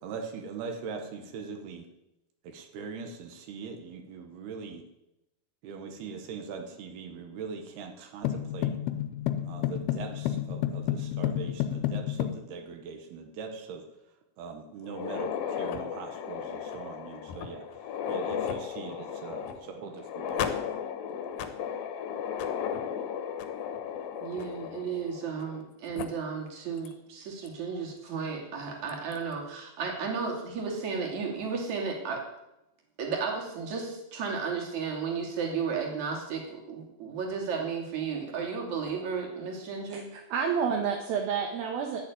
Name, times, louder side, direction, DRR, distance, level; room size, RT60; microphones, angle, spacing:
voice 1, 0.0-1.9 2.4-4.8 5.6-8.8 9.4-13.8 14.4-17.6 18.1-20.7, right 5 dB, 90° right, 4 dB, 3.3 m, -41 dB
sound 1, 8.2-12.4, left 11 dB, 85° left, 2.7 m, -30 dB
sound 2, 14.8-25.6 26.0-26.1 26.9-27.0 27.5-27.6 28.9-29.2, left 8 dB, 70° left, 2.6 m, -35 dB
voice 2, 24.2-32.2 33.0-40.1, right 5 dB, 50° right, 0 dB, 3.7 m, -33 dB
voice 3, 39.9-42.1, right 6 dB, 75° right, 1 dB, 3.1 m, -30 dB
12.0 x 7.2 x 9.2 m, 0.90 s
omnidirectional pair, 4.4 m